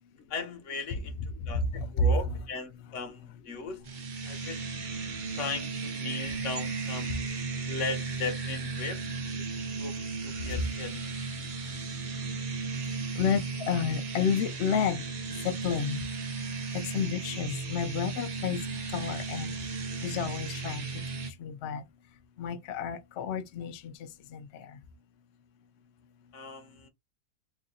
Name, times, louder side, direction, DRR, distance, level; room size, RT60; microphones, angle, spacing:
voice 1, 0.3-1.2 1.5-3.8 4.2-4.6 5.3-7.2 7.7-9.1 9.4-11.3 26.3-26.9, left 4 dB, 55° left, 1.2 m, -38 dB
sound 1, 3.8-21.3, right 4 dB, 40° right, 0.7 m, -35 dB
voice 2, 13.2-15.0 15.4-16.0 16.9-18.6 18.9-19.5 20.0-20.9 21.4-21.8 22.4-23.8 24.3-24.4, left 6 dB, 80° left, 0.6 m, -30 dB
3.1 x 2.6 x 3.7 m
omnidirectional pair, 1.7 m